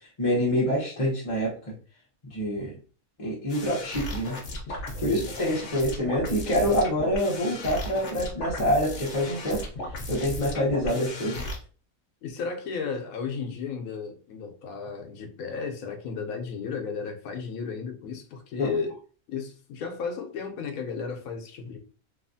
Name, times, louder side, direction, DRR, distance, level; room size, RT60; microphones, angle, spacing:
voice 1, 0.2-1.5 2.3-2.7 3.2-4.4 4.7-9.6 10.1-11.5 18.6-18.7, equal, 30° left, 0.8 m, -26 dB
sound 1, 3.5-11.6, left 1 dB, 60° left, 1.0 m, -36 dB
voice 2, 12.2-19.0 19.3-21.8, left 5 dB, 85° left, 1.1 m, -34 dB
3.0 x 2.4 x 2.6 m
omnidirectional pair, 1.5 m